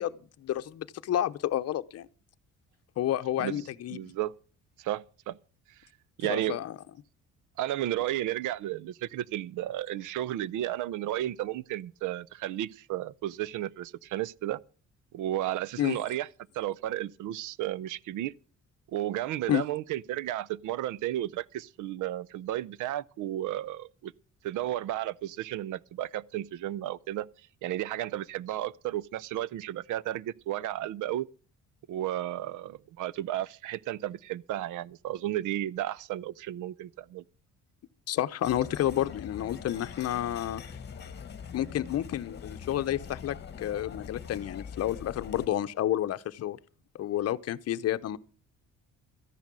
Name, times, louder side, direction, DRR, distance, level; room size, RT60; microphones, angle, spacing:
voice 1, 0.0-2.1 3.0-4.1 6.3-6.7 15.8-16.0 19.5-19.6 38.1-40.6 41.5-46.6 46.9-48.2, left 12 dB, 55° left, 0.8 m, -30 dB
voice 2, 3.9-4.3 4.8-5.4 6.2-6.6 7.6-14.6 15.1-16.3 16.5-18.3 18.9-24.1 24.4-27.3 27.6-31.3 31.9-37.2, right 13 dB, 80° right, 0.6 m, -33 dB
sound 1, 38.4-45.5, left 7 dB, 35° left, 1.5 m, -43 dB
13.5 x 10.5 x 6.1 m
cardioid pair, 125°, 30 cm